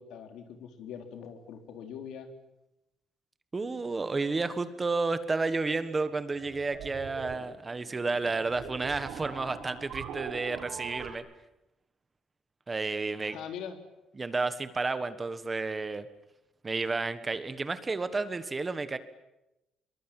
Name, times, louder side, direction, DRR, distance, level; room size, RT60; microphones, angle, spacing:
voice 1, 0.0-2.3 3.6-4.0 13.2-13.8, left 8 dB, 85° left, 6 dB, 3.9 m, -43 dB
voice 2, 3.5-11.2 12.7-13.4 14.2-16.1 16.6-19.0, right 3 dB, 20° right, 12 dB, 1.4 m, -31 dB
sound 1, 6.1-11.1, right 8 dB, 80° right, 4.1 m, -42 dB
26.0 x 23.0 x 9.1 m, 0.92 s
cardioid pair, 165°, 0 cm